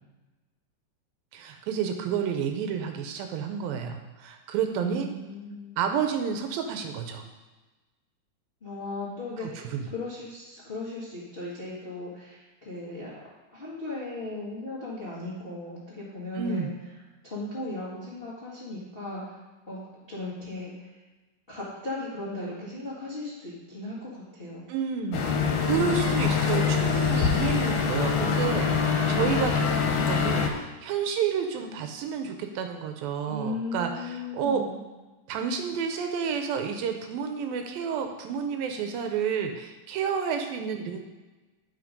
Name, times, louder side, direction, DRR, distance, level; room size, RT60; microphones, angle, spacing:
voice 1, 1.3-5.1 5.8-7.2 9.4-9.9 16.4-16.7 24.7-25.2 25.6-29.6 30.0-34.6 35.3-41.0, right 7 dB, 80° right, 5 dB, 2.4 m, -30 dB
voice 2, 4.8-5.8 8.6-13.1 13.5-16.7 17.2-19.4 19.7-21.0 21.5-24.6 25.7-26.0 29.0-29.5 33.3-34.8, left 2 dB, 30° left, -7 dB, 0.9 m, -37 dB
sound 1, 25.1-30.5, left 6 dB, 80° left, 2.8 m, -24 dB
9.3 x 5.4 x 5.2 m, 1.2 s
omnidirectional pair, 4.4 m